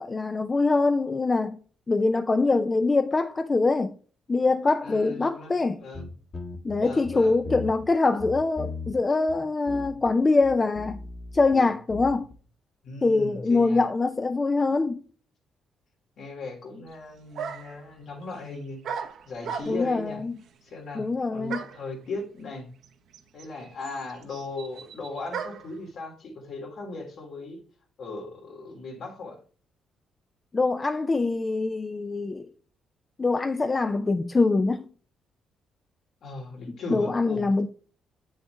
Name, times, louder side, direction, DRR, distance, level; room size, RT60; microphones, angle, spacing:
voice 1, 0.0-1.6 1.9-3.9 4.3-5.8 6.6-11.0 11.3-12.3 13.0-15.0 19.7-20.3 21.0-21.6 30.5-32.5 33.2-34.8 36.9-37.7, left 3 dB, 25° left, 0.5 m, -24 dB
voice 2, 4.8-5.5 5.8-6.1 6.8-7.4 12.8-13.8 16.2-20.2 20.6-22.7 23.3-27.6 28.0-29.4 36.2-37.4, left 3 dB, 65° left, 2.7 m, -38 dB
sound 1, 5.9-7.9 8.2-9.0 9.3-9.4 9.7-10.1 10.4-12.4, left 3 dB, 45° left, 1.7 m, -38 dB
sound 2, 16.9-17.0 17.4-17.8 18.8-20.0 21.5-21.9 22.8-22.9 23.1-25.8, right 7 dB, 70° right, 1.0 m, -36 dB
7.9 x 6.5 x 3.4 m
cardioid pair, 90°, 0 cm